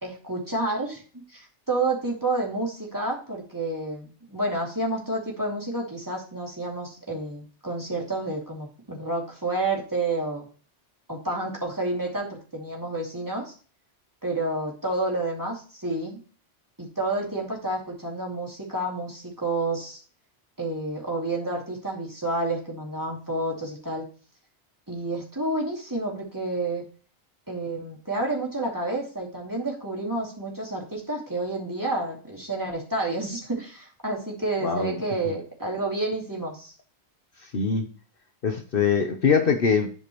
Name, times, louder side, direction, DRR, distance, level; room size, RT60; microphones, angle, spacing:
voice 1, 0.0-1.0 1.3-10.5 11.1-13.5 14.2-16.2 16.8-20.0 20.6-24.0 24.9-26.8 27.5-36.7, right 2 dB, 15° right, -3 dB, 2.6 m, -29 dB
voice 2, 34.6-35.0 37.5-37.9 38.4-39.9, left 6 dB, 55° left, 5 dB, 1.0 m, -22 dB
11.0 x 5.1 x 3.0 m, 0.38 s
omnidirectional pair, 1.1 m